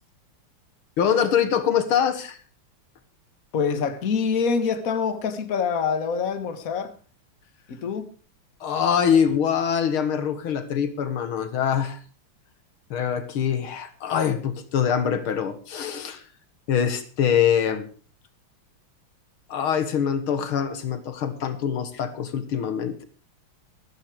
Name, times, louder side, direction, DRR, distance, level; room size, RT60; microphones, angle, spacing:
voice 1, 1.0-2.4 8.6-12.0 12.9-16.2 16.7-17.9 19.5-23.0, left 8 dB, 75° left, 2.2 m, -24 dB
voice 2, 3.5-6.9 7.7-8.1, left 6 dB, 45° left, 1.8 m, -25 dB
14.0 x 13.0 x 4.8 m
omnidirectional pair, 2.4 m